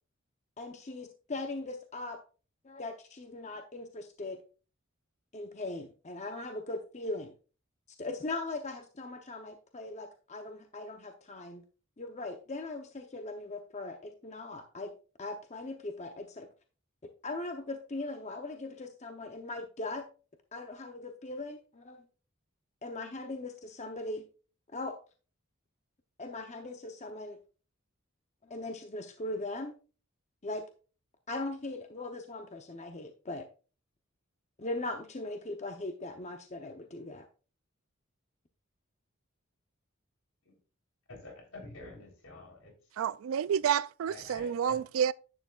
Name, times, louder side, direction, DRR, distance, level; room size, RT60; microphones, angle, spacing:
voice 1, 0.6-2.2 2.6-4.4 5.3-7.3 8.0-11.6 12.0-14.9 15.2-16.5 17.2-20.1 20.5-22.0 22.8-24.2 24.7-25.0 26.2-27.4 28.5-29.7 30.4-30.6 31.3-33.5 34.6-37.3, left 2 dB, 35° left, 0.7 m, -39 dB
voice 2, 41.1-42.7 44.0-44.8, left 2 dB, 75° left, 3.6 m, -48 dB
voice 3, 43.0-45.1, right 8 dB, 70° right, 0.3 m, -29 dB
10.5 x 8.9 x 2.4 m
head